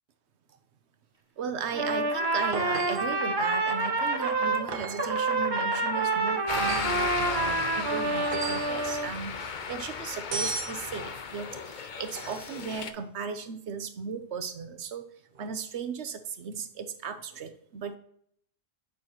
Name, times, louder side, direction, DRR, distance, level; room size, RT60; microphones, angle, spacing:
voice 1, 1.4-15.0 15.4-18.0, right 6 dB, 85° right, 9 dB, 1.1 m, -36 dB
Trumpet, 1.7-4.7 5.0-9.1, right 3 dB, 25° right, 0.6 m, -28 dB
sound 1, 2.5-3.2 4.7-5.2 6.6-7.0 8.2-8.7 10.3-10.8 12.1-12.6 15.4-15.5, right 4 dB, 55° right, 1.1 m, -36 dB
sound 2, 6.5-12.9, left 6 dB, 50° left, 0.7 m, -36 dB
8.3 x 6.0 x 3.0 m, 0.67 s
omnidirectional pair, 1.1 m